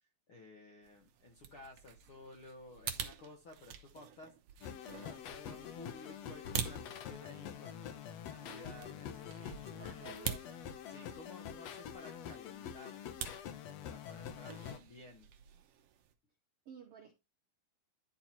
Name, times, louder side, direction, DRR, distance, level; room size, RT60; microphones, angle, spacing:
voice 1, 0.3-4.7 5.0-10.2 10.8-13.0 13.8-15.3, left 2 dB, 60° left, 1.3 m, -55 dB
sound 1, 0.8-16.1, right 9 dB, 85° right, 1.3 m, -47 dB
sound 2, 4.6-14.8, left 8 dB, 80° left, 1.5 m, -46 dB
voice 2, 9.7-10.5 16.7-17.1, right 6 dB, 70° right, 1.4 m, -52 dB
11.5 x 4.5 x 4.3 m
omnidirectional pair, 4.2 m